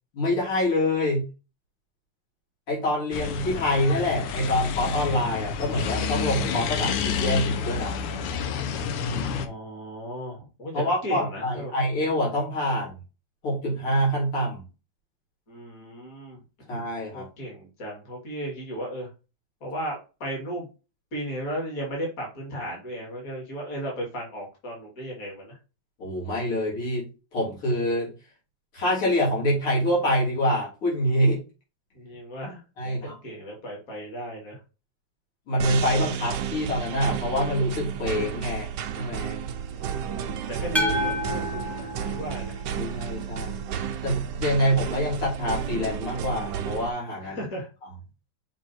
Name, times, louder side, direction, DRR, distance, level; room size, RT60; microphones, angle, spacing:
voice 1, 0.1-1.2 2.7-7.9 9.1-9.5 10.7-12.9 13.4-14.6 16.7-17.3 26.0-27.0 27.3-28.1 28.7-31.4 32.8-33.2 35.5-38.7 39.0-39.4 42.8-43.7 44.0-47.4, equal, 75° left, -5 dB, 4.2 m, -26 dB
sound 1, 3.1-9.5, left 6 dB, 90° left, 1.7 m, -29 dB
voice 2, 9.0-10.7 11.0-11.7 15.5-16.4 17.1-19.1 19.6-20.7 21.1-25.6 31.9-34.6 39.7-42.5 47.2-47.7, right 1 dB, 40° left, -1 dB, 2.5 m, -36 dB
sound 2, 35.6-46.9, right 8 dB, 70° right, 1.1 m, -32 dB
sound 3, 40.7-43.0, left 1 dB, ahead, 0.8 m, -29 dB
6.3 x 3.5 x 4.4 m, 0.31 s
omnidirectional pair, 2.4 m